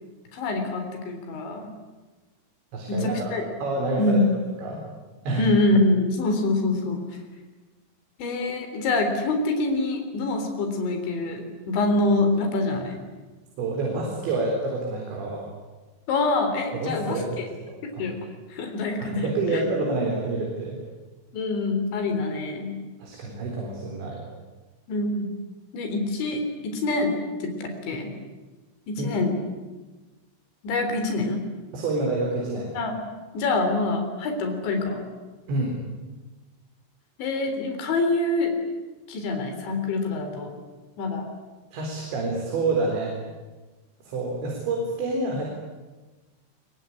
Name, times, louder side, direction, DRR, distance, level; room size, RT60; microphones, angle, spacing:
voice 1, 0.3-1.7 2.9-3.5 4.0-4.4 5.4-7.0 8.2-13.0 16.1-17.5 18.0-18.2 18.5-19.6 21.3-22.7 24.9-25.3 25.7-28.1 28.9-29.4 30.6-31.4 32.7-33.0 33.3-35.0 37.2-38.5 39.1-40.6 41.0-41.3, left 2 dB, 80° left, 5 dB, 6.0 m, -25 dB
voice 2, 2.7-3.3 3.6-4.2 4.6-4.8 5.2-5.4 13.6-15.5 16.7-18.0 19.0-20.8 23.0-24.2 29.0-29.2 31.7-32.7 35.5-35.8 41.7-43.2 44.0-45.4, right 3 dB, 75° right, -1 dB, 6.5 m, -28 dB
23.5 x 23.0 x 10.0 m, 1.2 s
omnidirectional pair, 5.2 m